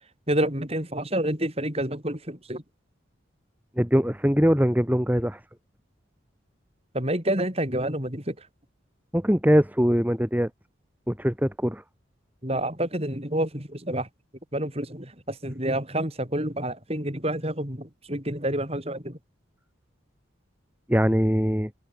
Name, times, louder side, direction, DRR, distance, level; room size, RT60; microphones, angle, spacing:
voice 1, 0.3-2.6 6.9-8.5 12.4-14.1 14.5-19.2, right 1 dB, 30° right, 6.7 m, -28 dB
voice 2, 3.8-5.4 9.1-10.5 11.1-11.8 20.9-21.7, equal, 10° right, 2.1 m, -22 dB
head